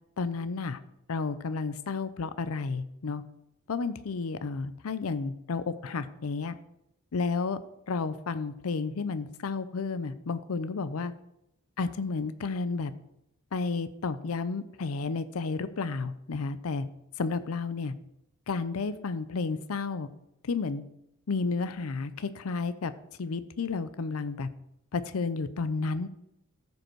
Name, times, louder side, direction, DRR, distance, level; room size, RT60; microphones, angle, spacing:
voice 1, 0.2-0.8 1.1-3.2 3.7-6.5 7.1-7.6 7.9-11.1 11.8-12.9 13.5-16.8 17.2-17.9 18.5-20.1 20.4-20.8 21.3-22.9 23.2-24.5 24.9-26.1, left 4 dB, 70° left, 13 dB, 0.5 m, -31 dB
14.0 x 5.3 x 4.6 m, 0.81 s
head